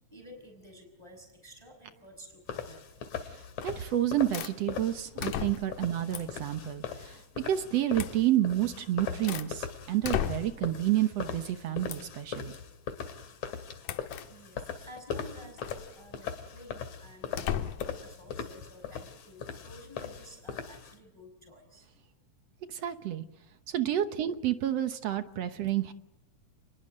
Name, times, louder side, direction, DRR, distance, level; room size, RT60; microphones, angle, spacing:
voice 1, 0.1-3.0 6.1-6.3 10.3-10.7 12.0-12.1 14.2-21.9 22.7-22.8, equal, 10° left, 4 dB, 5.1 m, -52 dB
sound 1, 2.5-21.0, left 7 dB, 65° left, 3.3 m, -40 dB
sound 2, 3.6-3.9 4.3-4.6 5.2-5.8 6.1-6.4 8.0-8.2 8.8-9.5 10.0-10.7 11.9-12.2 13.8-14.3 15.6-15.9 17.3-18.0, left 10 dB, 80° left, 2.7 m, -35 dB
voice 2, 3.6-12.5 22.7-23.2 23.7-25.9, right 12 dB, 65° right, 10 dB, 1.9 m, -29 dB
30.0 x 21.5 x 7.6 m, 0.85 s
omnidirectional pair, 3.7 m